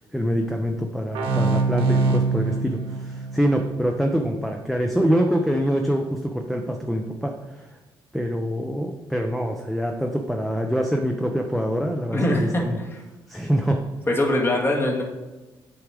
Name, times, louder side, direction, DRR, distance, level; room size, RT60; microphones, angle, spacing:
voice 1, 0.1-7.8 8.1-12.8 13.3-13.8, equal, ahead, 3 dB, 0.7 m, -25 dB
sound 1, 1.1-4.6, right 4 dB, 85° right, 1.2 m, -24 dB
voice 2, 12.1-12.5 14.1-15.0, left 1 dB, 25° left, -1 dB, 1.9 m, -21 dB
8.6 x 4.7 x 5.0 m, 1.1 s
cardioid pair, 100°, 9 cm